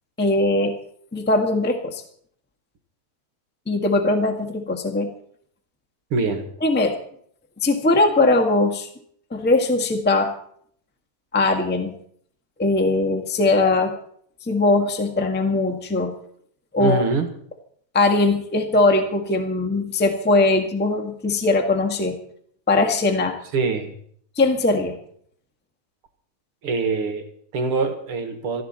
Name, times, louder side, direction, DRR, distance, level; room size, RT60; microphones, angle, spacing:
voice 1, 0.2-0.7 1.1-2.0 3.7-5.1 6.6-7.0 7.6-8.9 9.3-10.3 11.3-11.9 12.6-13.9 14.5-16.1 16.7-17.0 17.9-22.2 22.7-23.4 24.4-25.0, left 2 dB, 5° left, 4 dB, 0.8 m, -20 dB
voice 2, 6.1-6.5 16.8-17.3 23.5-24.0 26.6-28.6, right 4 dB, 50° right, 6 dB, 2.3 m, -24 dB
18.5 x 14.5 x 4.3 m, 0.63 s
omnidirectional pair, 3.4 m